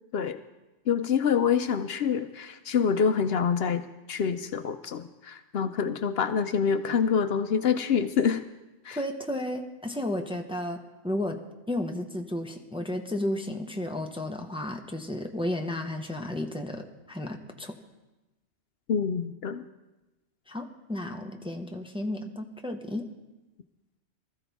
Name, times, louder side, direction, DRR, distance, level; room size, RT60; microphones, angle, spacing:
voice 1, 0.9-3.8 4.1-8.4 8.8-9.0 18.9-19.6, left 7 dB, 65° left, 10 dB, 0.8 m, -26 dB
voice 2, 8.9-11.4 11.7-17.8 20.5-23.1, left 1 dB, 5° right, 4 dB, 0.8 m, -33 dB
20.0 x 14.0 x 3.5 m, 1.1 s
omnidirectional pair, 1.2 m